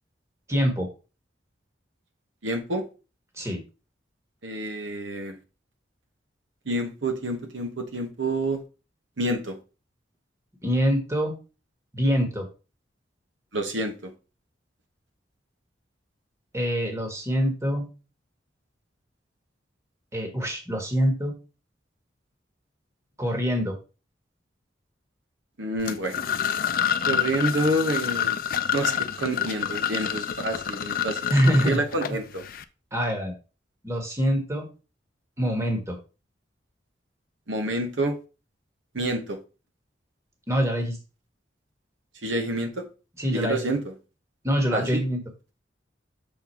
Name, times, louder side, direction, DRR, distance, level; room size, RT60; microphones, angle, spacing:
voice 1, 0.5-0.9 3.4-3.6 10.6-11.3 11.9-12.5 16.5-17.9 20.1-21.3 23.2-23.8 31.3-31.8 32.9-33.3 33.8-34.7 35.4-36.0 40.5-41.0 43.2-43.6 44.4-45.2, equal, 15° right, 1.3 m, -24 dB
voice 2, 2.4-2.8 4.4-5.4 6.7-8.6 9.2-9.6 13.5-14.1 25.6-26.3 27.0-28.4 28.7-31.3 31.6-32.4 37.5-38.2 38.9-39.4 42.2-42.9 43.3-43.9 44.7-45.0, right 1 dB, 85° right, 1.1 m, -28 dB
sound 1, 25.8-32.6, left 8 dB, 50° left, 0.4 m, -28 dB
6.8 x 3.9 x 4.3 m
head